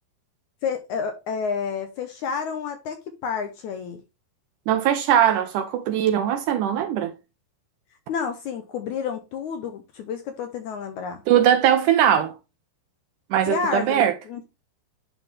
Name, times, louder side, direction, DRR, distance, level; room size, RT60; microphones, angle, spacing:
voice 1, 0.6-4.0 8.1-11.2 13.5-14.4, left 6 dB, 75° left, 1.8 m, -30 dB
voice 2, 4.7-7.1 11.3-12.3 13.3-14.1, right 10 dB, 75° right, 1.9 m, -20 dB
11.0 x 3.7 x 3.3 m
omnidirectional pair, 4.2 m